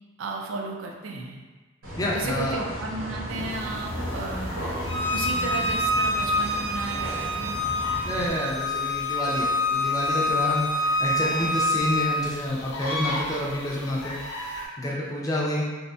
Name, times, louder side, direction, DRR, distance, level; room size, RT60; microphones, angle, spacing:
voice 1, 0.2-1.4 2.1-4.7 5.1-7.6, right 3 dB, 65° right, 1 dB, 0.3 m, -34 dB
sound 1, 1.8-8.3, equal, 85° right, 0.9 m, -34 dB
voice 2, 2.0-2.6 8.1-15.7, left 1 dB, 15° left, -4 dB, 0.3 m, -29 dB
sound 2, 3.5-14.7, left 1 dB, 80° left, 0.5 m, -39 dB
Bowed string instrument, 4.8-12.1, left 1 dB, 45° right, 0.7 m, -26 dB
2.7 x 2.1 x 2.6 m, 1.3 s
head